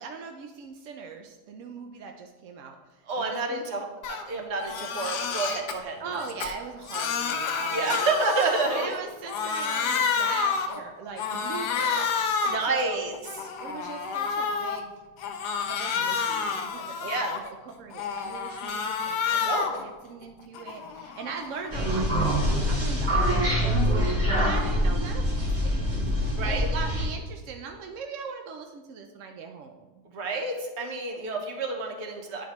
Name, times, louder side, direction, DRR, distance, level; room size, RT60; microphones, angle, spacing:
voice 1, 0.0-3.6 6.0-7.9 8.7-12.1 12.7-13.1 13.6-15.0 15.7-26.0 26.4-29.9, right 5 dB, 75° right, 4 dB, 0.7 m, -40 dB
voice 2, 3.1-6.0 7.7-8.9 12.4-13.1 17.0-17.3 19.4-19.7 26.3-26.7 30.0-32.5, right 3 dB, 50° right, 2 dB, 1.0 m, -29 dB
Crying sobbing, 4.0-4.2 4.6-5.8 6.2-9.0 9.3-10.8 11.2-12.7 13.1-14.8 15.2-17.5 17.9-19.8 20.2-22.6, left 6 dB, 75° left, 1.2 m, -30 dB
sound 1, 21.7-27.1, equal, 25° right, 2.4 m, -24 dB
10.0 x 5.0 x 3.0 m, 1.2 s
omnidirectional pair, 1.8 m